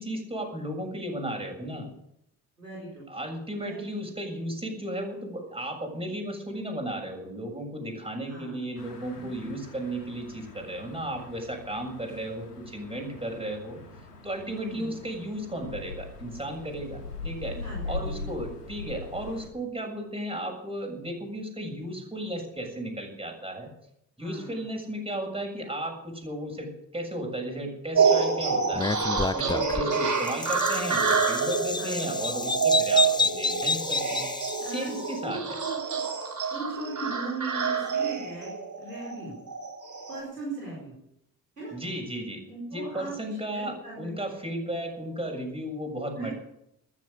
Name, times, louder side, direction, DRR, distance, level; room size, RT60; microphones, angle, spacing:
voice 1, 0.0-1.9 3.1-13.8 14.2-17.5 17.9-23.7 24.2-28.9 29.3-34.3 34.6-35.6 41.7-42.4 42.7-46.3, right 1 dB, 10° right, 2 dB, 7.2 m, -34 dB
voice 2, 2.6-3.1 3.6-3.8 8.3-8.7 9.1-9.6 14.5-14.9 17.6-18.3 24.2-24.6 29.7-29.9 31.8-32.1 33.2-33.3 34.6-34.9 35.2-36.0 36.5-38.5 38.8-39.3 40.1-40.9 41.6-41.7 42.5-43.1 43.5-44.1 46.1-46.3, right 2 dB, 90° right, -6 dB, 4.6 m, -38 dB
sound 1, 8.8-19.5, left 3 dB, 85° left, 2.0 m, -41 dB
sound 2, 27.9-40.2, right 5 dB, 40° right, 4.8 m, -27 dB
Bird vocalization bird call bird song, 28.7-35.0, left 3 dB, 10° left, 0.6 m, -30 dB
14.0 x 14.0 x 6.7 m, 0.76 s
figure-of-eight pair, 45°, 46 cm